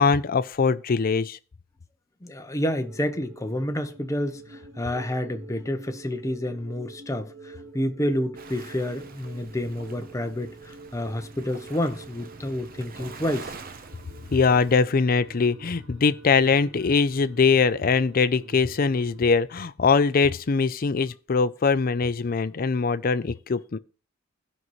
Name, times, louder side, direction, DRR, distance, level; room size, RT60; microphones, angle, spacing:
voice 1, 0.0-1.4 14.3-23.8, left 5 dB, 45° left, 0.5 m, -22 dB
voice 2, 2.2-13.5, left 1 dB, 15° left, 0.8 m, -29 dB
sound 1, 2.7-19.2, right 3 dB, 75° right, 1.8 m, -47 dB
Waves surf, 8.3-14.8, right 4 dB, 45° right, 0.9 m, -45 dB
16.0 x 5.5 x 3.1 m
head